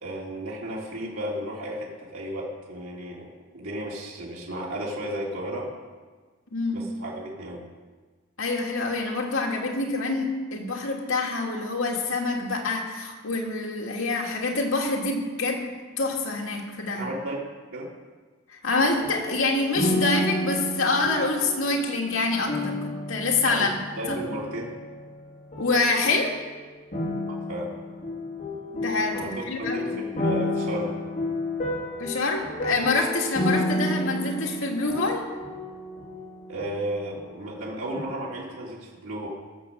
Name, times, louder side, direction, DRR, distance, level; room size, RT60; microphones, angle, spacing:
voice 1, 0.0-3.3 3.5-5.7 6.7-7.7 16.9-17.4 17.7-17.9 23.4-23.7 24.0-24.7 27.3-27.7 29.1-29.3 29.6-30.9 36.5-39.3, right 1 dB, 85° right, -4 dB, 3.2 m, -34 dB
voice 2, 6.5-6.9 8.4-17.1 18.5-23.8 24.1-24.2 25.6-26.4 28.7-30.0 32.0-35.2, left 3 dB, 70° left, 0 dB, 2.3 m, -26 dB
sound 1, 18.7-25.2 25.5-26.3 26.9-37.6 37.9-38.0, left 1 dB, 35° left, 4.3 m, -31 dB
17.0 x 7.5 x 6.8 m, 1.4 s
head